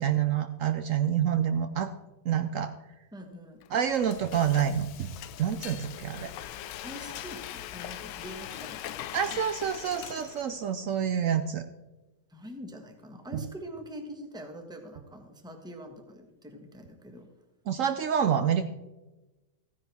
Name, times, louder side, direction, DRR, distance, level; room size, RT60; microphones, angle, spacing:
voice 1, 0.0-1.9 2.3-2.7 3.7-5.1 5.4-6.3 9.1-11.6 13.3-13.4 17.7-18.6, right 8 dB, 70° right, 9 dB, 0.7 m, -27 dB
voice 2, 3.1-3.7 6.8-9.4 12.3-17.3, equal, 5° right, 4 dB, 1.0 m, -44 dB
Frying (food), 3.6-10.7, left 12 dB, 85° left, 1.3 m, -41 dB
15.0 x 10.5 x 3.5 m, 1.1 s
omnidirectional pair, 1.9 m